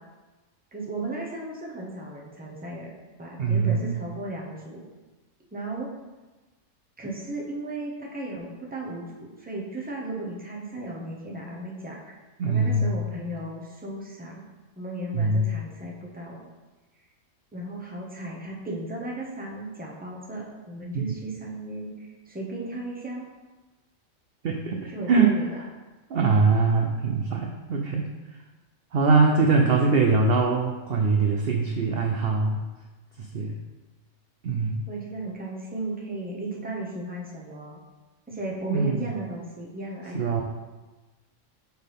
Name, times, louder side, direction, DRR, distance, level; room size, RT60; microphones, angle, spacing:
voice 1, 0.7-2.9 3.2-4.8 5.5-5.9 7.0-12.0 12.4-14.4 14.8-16.4 17.5-23.3 24.9-25.6 34.9-37.8 38.3-40.4, right 2 dB, 10° right, -2 dB, 0.8 m, -35 dB
voice 2, 3.4-4.0 12.4-13.0 15.1-15.5 21.1-21.2 24.4-25.3 26.1-28.1 28.9-32.7 33.2-33.6 34.4-34.8 38.7-39.1 40.1-40.4, right 4 dB, 60° right, 2 dB, 0.6 m, -23 dB
8.0 x 4.3 x 3.5 m, 1.2 s
omnidirectional pair, 1.5 m